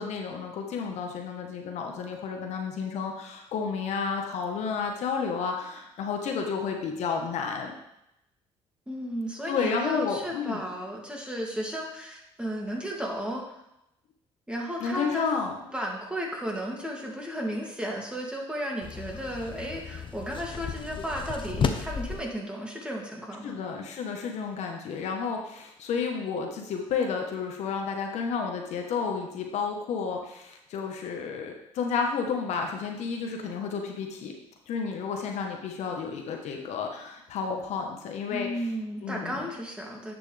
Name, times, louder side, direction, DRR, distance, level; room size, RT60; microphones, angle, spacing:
voice 1, 0.0-7.7 9.5-10.6 14.8-15.6 23.4-34.3 34.7-38.5 39.0-39.5, left 5 dB, 70° left, 2 dB, 1.3 m, -31 dB
voice 2, 8.9-13.4 14.5-15.2 15.7-23.6 38.3-40.1, equal, 10° right, -2 dB, 2.5 m, -34 dB
sound 1, 18.8-22.2, left 6 dB, 45° left, 0.9 m, -33 dB
10.0 x 6.1 x 3.4 m, 0.84 s
supercardioid pair, 75°, 12 cm